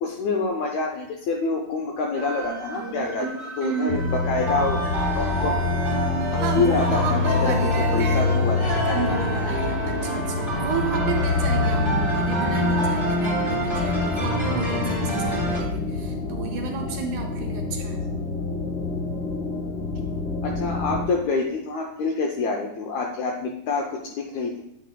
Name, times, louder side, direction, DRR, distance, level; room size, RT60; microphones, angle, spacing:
voice 1, 0.0-3.3 3.6-4.8 5.1-5.6 6.3-8.7 20.4-24.6, left 3 dB, 75° left, 1 dB, 1.7 m, -27 dB
sound 1, 2.2-14.5, right 4 dB, 35° right, 1.6 m, -36 dB
voice 2, 3.2-4.1 6.4-8.2 8.8-18.0, right 6 dB, 75° right, 3 dB, 2.1 m, -32 dB
sound 2, 3.9-21.0, left 4 dB, 55° left, 1.9 m, -28 dB
sound 3, 4.3-15.6, left 1 dB, 15° left, 1.0 m, -25 dB
9.1 x 8.6 x 2.2 m, 0.79 s
omnidirectional pair, 3.9 m